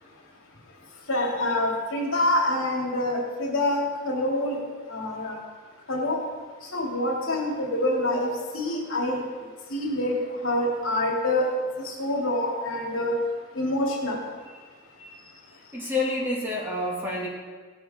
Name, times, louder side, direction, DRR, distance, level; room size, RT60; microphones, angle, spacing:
voice 1, 1.1-4.6 4.9-5.4 5.9-6.2 6.6-9.2 9.7-10.1 10.4-11.5 11.8-13.2 13.5-14.2, left 1 dB, 65° left, -1 dB, 2.7 m, -26 dB
voice 2, 15.7-17.3, left 2 dB, 10° right, -4 dB, 2.1 m, -28 dB
17.0 x 8.3 x 4.4 m, 1.5 s
head